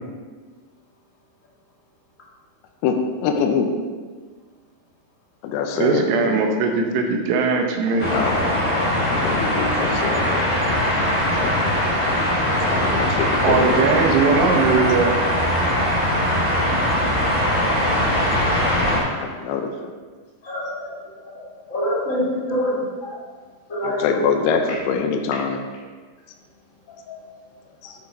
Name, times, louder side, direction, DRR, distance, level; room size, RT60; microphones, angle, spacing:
voice 1, 3.2-3.7 5.4-6.4 7.9-8.4 9.1-10.5 11.4-11.5 12.6-14.2 19.2-19.9 23.8-25.6 27.8-27.9, left 6 dB, 80° left, 4 dB, 2.7 m, -24 dB
voice 2, 5.7-8.1 13.4-15.2, right 4 dB, 85° right, 3 dB, 3.1 m, -20 dB
sound 1, 8.0-19.0, left 1 dB, 5° left, 1.1 m, -21 dB
voice 3, 20.4-23.2 23.7-24.2 27.1-27.2, equal, 45° left, -6 dB, 1.0 m, -26 dB
9.4 x 6.7 x 4.2 m, 1.5 s
omnidirectional pair, 4.7 m